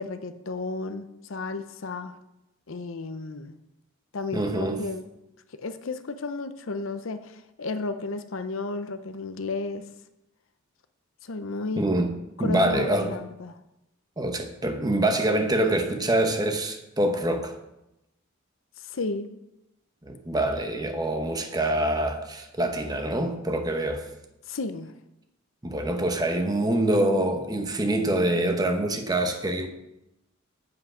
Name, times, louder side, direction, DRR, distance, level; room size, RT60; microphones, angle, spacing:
voice 1, 0.0-2.2 2.7-3.6 4.1-5.0 5.6-9.9 11.2-11.9 12.4-13.6 18.8-19.3 24.5-24.9, left 3 dB, 65° left, 10 dB, 0.7 m, -33 dB
voice 2, 4.3-4.8 11.8-12.1 12.4-13.1 14.2-17.5 20.0-24.1 25.6-29.7, right 1 dB, 20° right, 5 dB, 1.0 m, -25 dB
8.5 x 7.9 x 5.0 m, 0.89 s
head